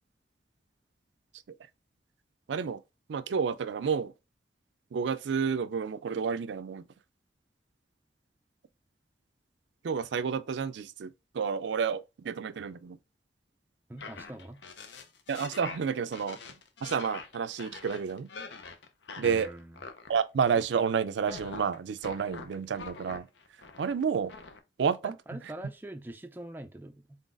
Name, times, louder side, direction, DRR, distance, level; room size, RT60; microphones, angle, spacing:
voice 1, 2.5-2.8 3.1-4.1 4.9-6.8 9.8-13.0 15.3-16.4 16.8-18.3 19.2-19.5 20.1-23.3 23.8-24.3 24.8-25.2, right 6 dB, 85° right, 0.4 m, -30 dB
voice 2, 13.9-14.8 19.2-19.8 25.0-27.2, right 1 dB, 10° right, 0.3 m, -44 dB
sound 1, 14.0-20.2 20.5-20.9 21.2-24.0 24.3-24.6, left 4 dB, 85° left, 0.6 m, -45 dB
3.9 x 3.9 x 2.5 m
head